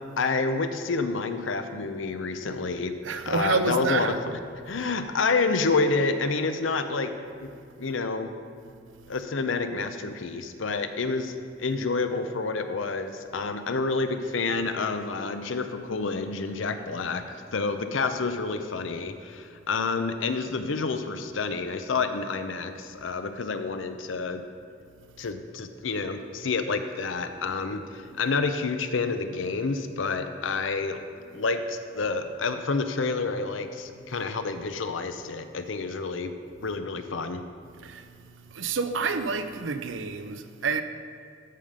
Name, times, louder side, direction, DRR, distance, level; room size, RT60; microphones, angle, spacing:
voice 1, 0.2-2.9 3.2-4.4 4.7-7.1 7.4-7.5 7.8-8.3 9.1-11.3 11.6-24.4 25.2-31.1 31.3-36.3 36.6-37.4, left 4 dB, 90° left, 0.7 m, -28 dB
voice 2, 3.0-4.2 9.0-9.1 37.8-40.8, right 4 dB, 80° right, 0.6 m, -29 dB
13.0 x 5.1 x 5.4 m
head